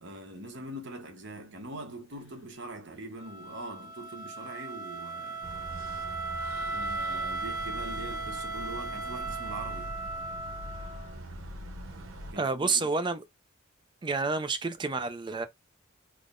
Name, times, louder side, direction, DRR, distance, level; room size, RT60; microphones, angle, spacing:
voice 1, 0.0-5.5 6.6-9.9 12.3-12.9, right 2 dB, 60° right, 1.0 m, -42 dB
Wind instrument woodwind instrument, 3.2-11.2, right 3 dB, 60° left, 0.8 m, -37 dB
sound 1, 5.4-12.3, right 1 dB, 90° right, 0.9 m, -43 dB
voice 2, 12.4-13.2 14.0-15.5, right 4 dB, 20° right, 0.4 m, -29 dB
3.6 x 2.1 x 3.7 m
head